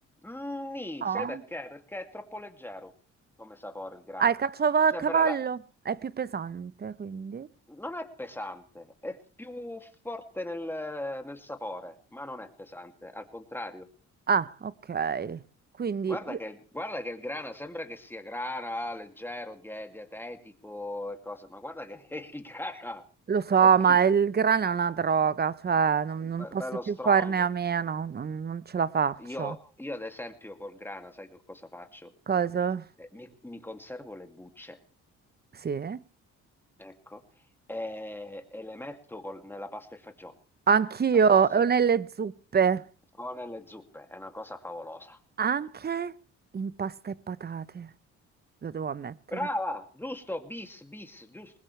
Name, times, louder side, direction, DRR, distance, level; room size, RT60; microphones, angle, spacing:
voice 1, 0.2-2.9 3.4-4.3 4.9-5.4 7.7-13.9 16.1-23.0 23.6-24.0 26.2-27.4 29.2-32.1 33.0-34.8 36.8-37.2 37.7-40.4 41.1-41.6 43.2-45.2 49.3-51.6, left 1 dB, 5° left, 2.4 m, -39 dB
voice 2, 1.0-1.4 4.2-5.6 5.8-7.5 14.3-15.4 15.8-16.4 23.3-26.6 26.9-29.5 32.3-32.8 35.6-36.0 40.7-42.8 45.4-46.1 46.5-47.9 48.6-49.1, right 6 dB, 35° right, 0.8 m, -25 dB
21.5 x 19.5 x 3.3 m
cardioid pair, 90°, 30 cm